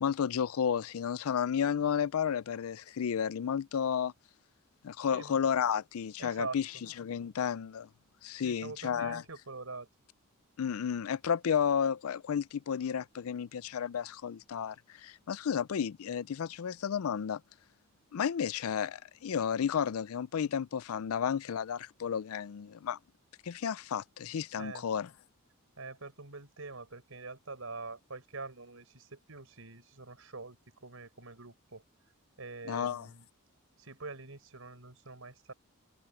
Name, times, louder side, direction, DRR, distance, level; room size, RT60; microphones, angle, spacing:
voice 1, 0.0-4.1 4.8-6.7 7.0-7.9 8.2-9.2 10.6-17.4 18.1-23.0 23.5-25.1 32.7-33.1, left 7 dB, 75° left, 0.4 m, -32 dB
voice 2, 5.0-5.4 6.2-6.6 8.3-9.9 24.6-24.9 25.8-31.8 32.4-33.3 33.8-35.5, right 3 dB, 70° right, 4.2 m, -44 dB
head